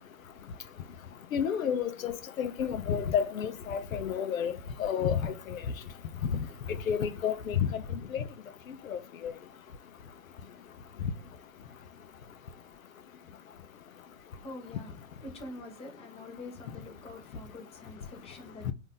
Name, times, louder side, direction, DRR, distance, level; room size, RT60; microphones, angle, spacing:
voice 1, 1.3-5.6 6.9-7.7 8.1-8.2 8.9-9.0 9.2-9.3, left 8 dB, 85° left, 0.6 m, -30 dB
voice 2, 14.4-14.9 15.2-18.7, left 2 dB, 15° left, 1.0 m, -45 dB
3.9 x 2.7 x 3.7 m
hypercardioid pair, 115°, 40 cm